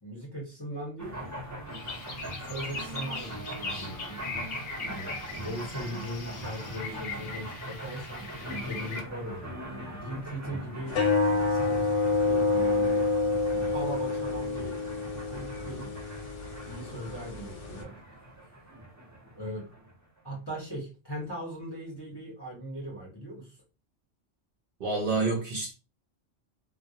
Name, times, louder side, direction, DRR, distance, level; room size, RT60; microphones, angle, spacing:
voice 1, 0.0-1.2 2.4-4.2 4.8-5.1 5.4-13.1 13.7-15.9 16.6-18.0 19.3-19.7 20.2-23.6, right 1 dB, 25° left, 0.6 m, -39 dB
sound 1, 1.0-20.2, right 1 dB, 25° right, 0.3 m, -42 dB
sound 2, 1.7-9.0, left 3 dB, 60° left, 0.8 m, -40 dB
sound 3, 10.9-17.8, left 3 dB, 85° left, 1.0 m, -28 dB
voice 2, 24.8-25.7, right 3 dB, 60° right, 0.7 m, -28 dB
2.2 x 2.1 x 2.7 m
omnidirectional pair, 1.2 m